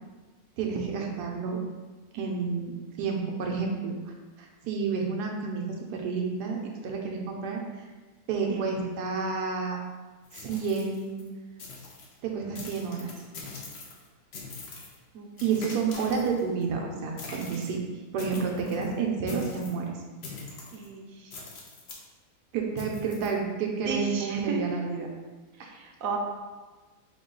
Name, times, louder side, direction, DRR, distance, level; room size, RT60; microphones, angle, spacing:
voice 1, 0.6-1.6 2.1-7.8 8.3-9.8 10.3-11.2 12.2-13.1 15.4-17.8 18.1-19.9 22.5-25.1 25.6-25.7, right 5 dB, 90° right, 1 dB, 1.2 m, -30 dB
sound 1, 10.2-11.3 11.6-12.1 12.6-14.1 14.3-15.0 15.4-16.6 17.2-17.7 18.2-18.9 19.3-19.8 20.2-20.9 21.3-22.0 22.8-23.3, left 3 dB, 60° left, 0.7 m, -43 dB
voice 2, 20.7-21.4 23.8-24.6 25.6-26.2, right 5 dB, 70° right, 1 dB, 0.9 m, -35 dB
3.9 x 2.3 x 3.7 m, 1.3 s
omnidirectional pair, 1.7 m